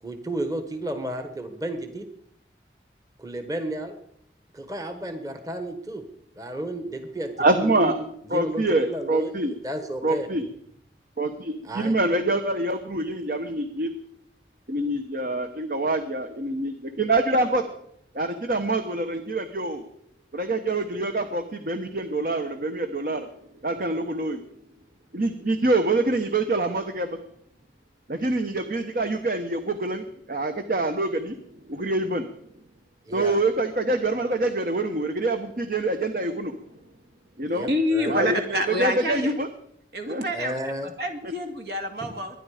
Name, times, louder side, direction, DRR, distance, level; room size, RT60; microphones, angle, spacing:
voice 1, 0.0-2.1 3.2-3.9 4.5-6.0 6.3-10.3 11.6-12.0 33.1-33.4 37.5-38.3 40.3-40.9 42.0-42.1, right 1 dB, 20° right, 7 dB, 1.3 m, -33 dB
voice 2, 7.4-8.0 8.3-9.5 10.0-10.4 11.2-13.9 14.7-17.7 18.1-19.8 20.3-23.3 23.6-24.4 25.1-27.2 28.1-31.4 31.7-32.2 33.1-36.5 37.4-37.7 38.1-39.5 40.1-40.2, right 2 dB, 50° right, 8 dB, 1.0 m, -25 dB
voice 3, 37.7-39.3 39.9-42.4, equal, 70° right, 5 dB, 2.2 m, -27 dB
22.5 x 10.5 x 4.9 m, 0.71 s
head